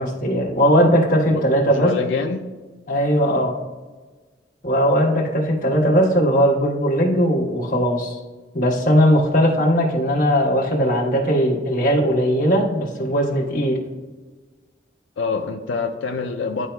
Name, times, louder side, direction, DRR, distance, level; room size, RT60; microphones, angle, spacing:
voice 1, 0.0-1.9 2.9-3.6 4.6-8.2 8.5-13.8, equal, 45° left, -2 dB, 1.3 m, -19 dB
voice 2, 1.3-2.4 15.2-16.7, left 4 dB, 85° left, 2 dB, 0.4 m, -25 dB
10.5 x 3.9 x 2.3 m, 1.3 s
head